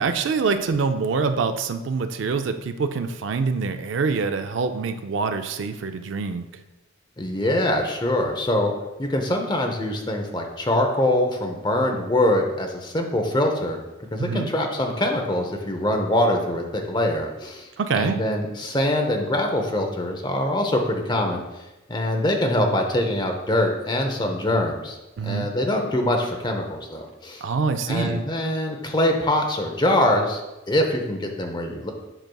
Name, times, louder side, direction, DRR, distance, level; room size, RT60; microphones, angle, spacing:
voice 1, 0.0-6.6 14.2-14.5 17.8-18.2 25.2-25.5 27.4-28.2, right 4 dB, 65° right, 8 dB, 0.4 m, -25 dB
voice 2, 7.2-8.7 9.0-13.8 14.1-17.7 18.0-21.4 21.9-25.0 25.2-27.4 27.9-30.4 30.7-31.9, left 1 dB, 20° left, 3 dB, 0.7 m, -23 dB
7.8 x 5.9 x 2.3 m, 1.0 s
head